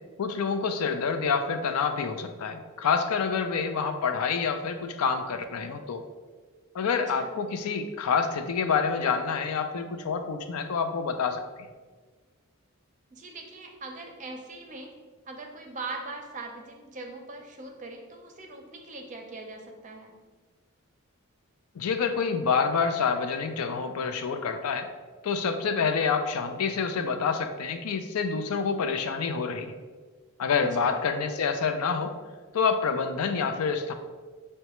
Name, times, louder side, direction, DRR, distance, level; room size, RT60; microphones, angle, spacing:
voice 1, 0.2-6.0 6.7-11.4 21.8-24.9 25.2-29.7 30.4-32.2 32.5-33.9, left 5 dB, 85° left, 7 dB, 0.4 m, -27 dB
voice 2, 7.0-7.4 13.1-14.9 15.3-20.1 30.6-31.0, right 3 dB, 35° right, 2 dB, 0.5 m, -41 dB
6.5 x 2.2 x 3.0 m, 1.4 s
head